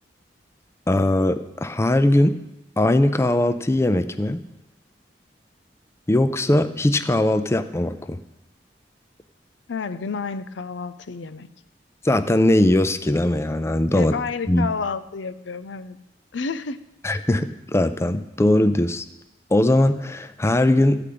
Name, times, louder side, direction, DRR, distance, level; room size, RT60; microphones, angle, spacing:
voice 1, 0.9-2.4 2.8-4.4 6.1-8.2 12.0-14.1 14.5-14.7 17.0-19.0 19.5-21.0, left 1 dB, 15° left, 11 dB, 0.4 m, -20 dB
voice 2, 9.7-11.5 13.9-16.0 16.3-16.8, left 5 dB, 90° left, 12 dB, 0.6 m, -30 dB
13.5 x 5.0 x 8.5 m, 0.92 s
head